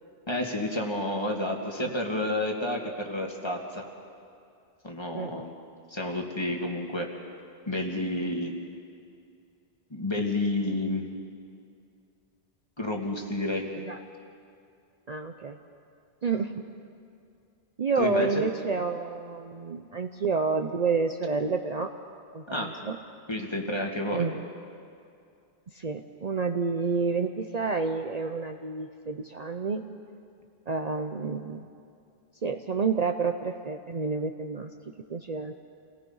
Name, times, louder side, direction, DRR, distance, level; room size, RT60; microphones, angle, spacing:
voice 1, 0.3-3.8 4.8-5.5 5.9-7.2 7.7-8.5 9.9-11.1 12.8-13.7 18.0-18.4 22.5-22.8 23.3-24.3, left 1 dB, 25° left, 1 dB, 2.1 m, -30 dB
voice 2, 15.1-15.6 16.2-16.6 17.8-21.9 22.3-23.0 24.1-24.4 25.7-29.8 30.7-31.7 32.4-34.7 35.1-35.5, right 4 dB, 45° right, 5 dB, 0.8 m, -29 dB
28.0 x 18.5 x 5.6 m, 2.4 s
omnidirectional pair, 1.1 m